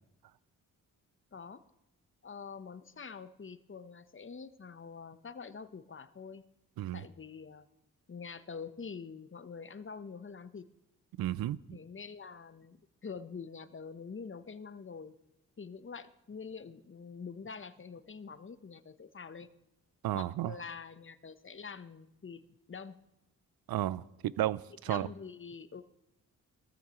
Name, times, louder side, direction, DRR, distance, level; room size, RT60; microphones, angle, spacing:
voice 1, 1.3-1.6 2.2-6.4 6.9-7.7 8.1-10.7 11.7-15.1 15.6-19.5 20.1-22.4 22.7-23.0 24.9-25.8, left 5 dB, 35° left, 1.0 m, -45 dB
voice 2, 11.2-11.6 20.0-20.5 23.7-25.1, right 13 dB, 70° right, 0.6 m, -33 dB
19.5 x 14.0 x 3.1 m
supercardioid pair, 45°, 38 cm